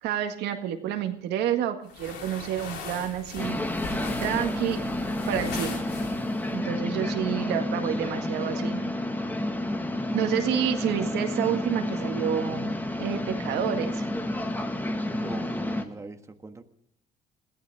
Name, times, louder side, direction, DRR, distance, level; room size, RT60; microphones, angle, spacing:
voice 1, 0.0-3.6 4.2-4.8 5.3-5.8 6.5-8.9 10.1-14.0, right 10 dB, 85° right, 5 dB, 1.9 m, -29 dB
sound 1, 1.9-6.5, left 4 dB, 75° left, 3.9 m, -39 dB
sound 2, 3.4-15.8, left 1 dB, 10° left, 1.7 m, -30 dB
voice 2, 15.1-16.6, right 3 dB, 15° right, 6 dB, 1.5 m, -41 dB
21.5 x 15.0 x 3.6 m, 0.70 s
cardioid pair, 110°, 17 cm